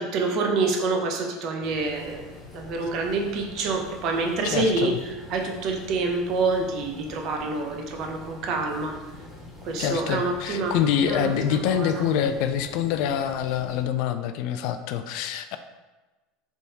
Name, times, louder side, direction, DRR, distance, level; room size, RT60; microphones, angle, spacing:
voice 1, 0.0-5.0 5.3-8.9 9.6-12.0, right 3 dB, 55° right, 3 dB, 0.7 m, -27 dB
sound 1, 1.6-13.8, left 2 dB, 15° left, 1.2 m, -44 dB
voice 2, 4.4-5.0 9.8-15.6, left 9 dB, 65° left, 9 dB, 0.3 m, -26 dB
3.5 x 2.7 x 4.1 m, 1.2 s
supercardioid pair, 115°, 0 cm